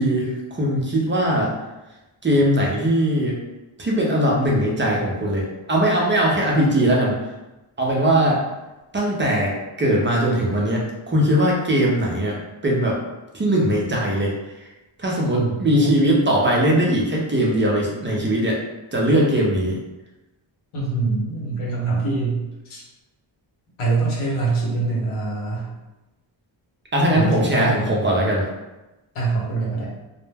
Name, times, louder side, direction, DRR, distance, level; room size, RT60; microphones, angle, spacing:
voice 1, 0.0-1.5 2.2-3.4 3.8-7.2 7.8-8.4 8.9-9.5 9.8-12.4 12.6-13.0 13.3-14.3 14.6-14.7 15.0-18.6 18.9-19.8 21.5-21.7 26.9-28.4, right 1 dB, 25° right, -3 dB, 0.4 m, -20 dB
voice 2, 15.4-15.9 20.7-22.8 23.8-25.7 27.1-27.9 29.1-29.9, right 3 dB, 85° left, -4 dB, 0.9 m, -24 dB
2.2 x 2.0 x 3.2 m, 1.0 s
wide cardioid pair, 160°, 49 cm